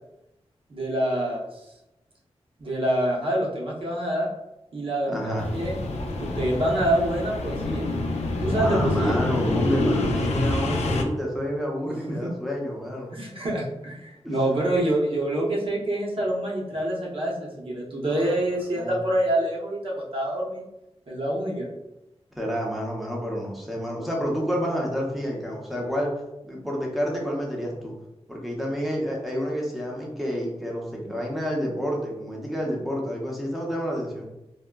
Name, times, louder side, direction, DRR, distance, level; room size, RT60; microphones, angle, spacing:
voice 1, 0.7-1.7 2.6-4.3 4.7-5.8 6.1-7.9 8.4-9.2 12.1-12.3 13.1-20.6 21.1-21.7, right 1 dB, 55° right, -3 dB, 0.7 m, -26 dB
voice 2, 5.1-5.5 8.4-13.1 14.2-14.3 18.1-18.3 18.7-19.0 22.4-26.1 26.4-27.9 28.3-34.3, equal, ahead, -2 dB, 0.6 m, -29 dB
sound 1, 5.4-11.0, left 2 dB, 90° left, 0.4 m, -26 dB
3.5 x 2.1 x 2.2 m, 0.93 s
wide cardioid pair, 120°, 11 cm